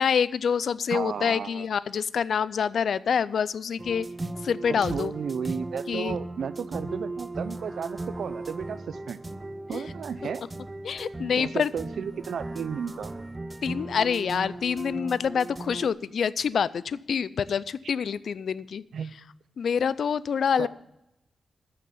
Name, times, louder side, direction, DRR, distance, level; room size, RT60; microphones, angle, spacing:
voice 1, 0.0-4.1 4.4-5.1 5.9-6.2 9.7-9.8 10.8-11.7 13.6-18.8 19.6-20.7, left 7 dB, 75° left, 18 dB, 0.4 m, -26 dB
voice 2, 0.9-1.7 4.7-9.2 9.7-10.5 11.4-13.1 17.8-17.9 18.9-19.1 20.6-20.7, right 7 dB, 80° right, 15 dB, 0.5 m, -33 dB
sound 1, 3.8-15.9, right 2 dB, 20° right, 0.5 m, -37 dB
9.1 x 6.6 x 8.4 m, 0.87 s
wide cardioid pair, 110°, 0 cm